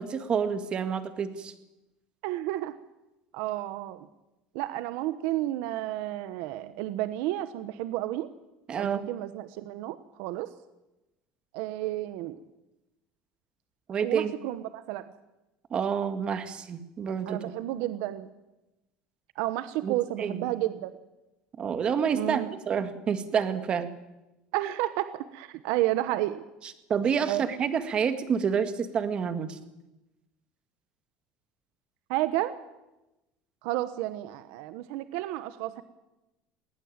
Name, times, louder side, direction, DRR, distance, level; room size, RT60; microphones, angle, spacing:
voice 1, 0.0-1.5 8.7-9.0 13.9-14.3 15.7-17.4 19.8-19.9 20.2-20.4 21.6-23.9 26.9-29.6, right 7 dB, 30° right, 10 dB, 1.9 m, -28 dB
voice 2, 2.2-2.8 3.3-4.1 4.5-8.3 8.8-10.5 11.5-12.4 14.0-15.1 17.3-18.3 19.3-20.9 22.1-22.5 24.5-26.4 27.3-27.4 32.1-32.6 33.6-35.8, right 15 dB, 80° right, 12 dB, 1.1 m, -31 dB
19.0 x 18.0 x 8.9 m, 0.99 s
cardioid pair, 150°, 3 cm